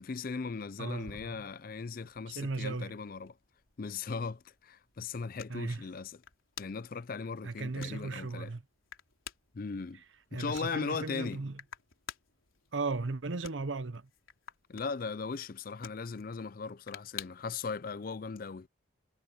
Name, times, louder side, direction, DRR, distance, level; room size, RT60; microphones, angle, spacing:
voice 1, 0.0-3.3 3.8-6.2 6.6-8.5 9.5-10.0 10.3-11.4 14.7-18.7, left 4 dB, 45° left, 0.4 m, -38 dB
voice 2, 0.8-1.5 2.3-2.9 5.5-5.8 7.4-8.6 10.3-11.6 12.7-14.1, right 3 dB, 70° right, 0.9 m, -36 dB
sound 1, 0.9-17.6, left 8 dB, 90° left, 4.0 m, -53 dB
head